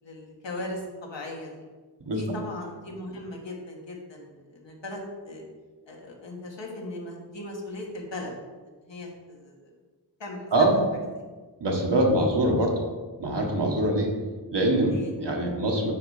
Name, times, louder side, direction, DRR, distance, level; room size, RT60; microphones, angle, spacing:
voice 1, 0.0-1.5 2.1-5.4 5.9-8.3 8.6-9.6 10.2-10.7 14.9-15.1, left 1 dB, 85° left, -1 dB, 1.7 m, -38 dB
voice 2, 2.0-2.4 10.5-10.8 11.6-12.8 13.2-14.1 14.5-15.9, right 1 dB, 70° right, 0 dB, 1.6 m, -23 dB
9.3 x 4.1 x 4.9 m, 1.4 s
wide cardioid pair, 60°, 43 cm